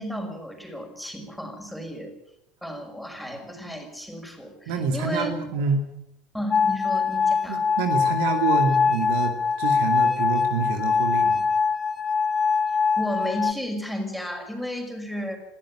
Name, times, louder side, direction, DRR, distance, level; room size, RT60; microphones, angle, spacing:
voice 1, 0.0-2.1 2.6-5.3 6.3-7.6 13.0-15.4, left 1 dB, ahead, 3 dB, 6.1 m, -33 dB
voice 2, 4.7-5.9 7.5-11.4, right 5 dB, 60° right, 6 dB, 2.4 m, -27 dB
sound 1, 6.5-13.5, left 5 dB, 20° left, 1.8 m, -23 dB
21.0 x 15.5 x 8.8 m, 0.81 s
figure-of-eight pair, 70°, 0 cm